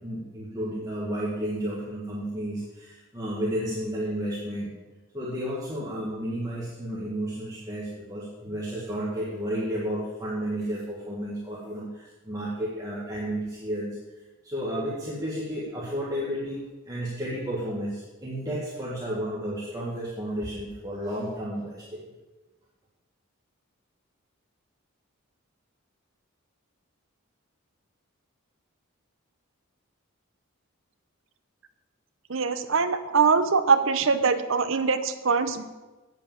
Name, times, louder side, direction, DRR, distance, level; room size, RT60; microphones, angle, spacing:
voice 1, 0.0-4.7 5.1-22.0, equal, 15° right, -6 dB, 1.7 m, -32 dB
voice 2, 32.3-35.6, right 5 dB, 65° right, 10 dB, 0.8 m, -23 dB
8.6 x 7.7 x 7.5 m, 1.2 s
head